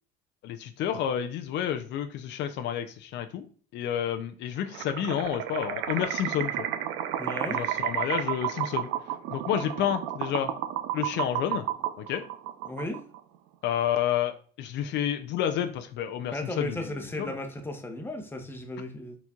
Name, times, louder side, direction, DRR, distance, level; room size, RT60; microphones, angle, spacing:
voice 1, 0.4-3.4 3.7-6.7 7.5-8.9 9.3-10.5 10.9-11.6 12.0-12.2 13.6-17.4, left 10 dB, 60° left, 7 dB, 0.5 m, -30 dB
sound 1, 4.7-13.2, right 12 dB, 80° right, 0.6 m, -32 dB
voice 2, 7.2-7.6 12.7-13.0 16.3-19.2, left 1 dB, 10° left, 4 dB, 0.8 m, -35 dB
4.5 x 4.1 x 2.3 m, 0.44 s
cardioid pair, 110°, 20 cm